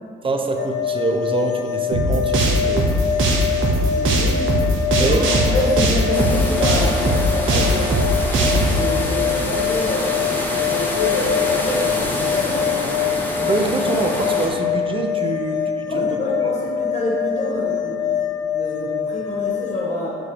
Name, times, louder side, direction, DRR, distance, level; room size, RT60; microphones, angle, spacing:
voice 1, 0.2-2.9 5.0-5.2 13.4-16.2, right 3 dB, 25° right, 4 dB, 0.6 m, -24 dB
sound 1, 0.6-19.8, left 9 dB, 60° left, 0.9 m, -25 dB
sound 2, 1.9-8.8, right 1 dB, 80° right, 0.9 m, -19 dB
voice 2, 3.9-4.5 5.0-5.2 5.5-7.9 8.7-12.8 15.8-18.2 18.5-20.2, left 1 dB, 40° left, -5 dB, 1.4 m, -26 dB
sound 3, 6.1-14.5, equal, 10° left, 1.0 m, -27 dB
6.0 x 3.2 x 4.8 m, 2.3 s
cardioid pair, 90°, 20 cm